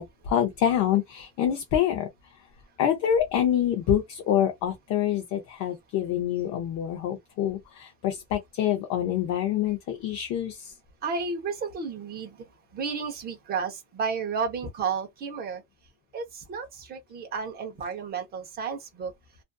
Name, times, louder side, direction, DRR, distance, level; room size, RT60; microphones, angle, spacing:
voice 1, 0.0-2.1 2.8-10.7, left 10 dB, 40° left, 0.6 m, -26 dB
voice 2, 11.0-12.5 12.7-15.6 16.1-19.1, right 5 dB, 25° right, 0.7 m, -32 dB
2.5 x 2.4 x 2.2 m
cardioid pair, 160°, 42 cm